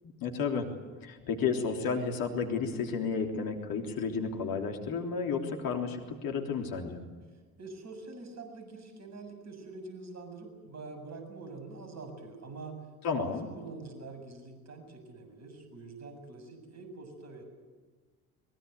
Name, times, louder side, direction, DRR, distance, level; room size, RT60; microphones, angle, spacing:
voice 1, 0.2-0.7 1.0-7.0 13.0-13.5, left 5 dB, 55° left, 3 dB, 3.5 m, -32 dB
voice 2, 7.6-12.8 13.1-17.4, right 3 dB, 40° right, 6 dB, 7.4 m, -45 dB
23.5 x 22.0 x 8.1 m, 1.4 s
figure-of-eight pair, 55°, 42 cm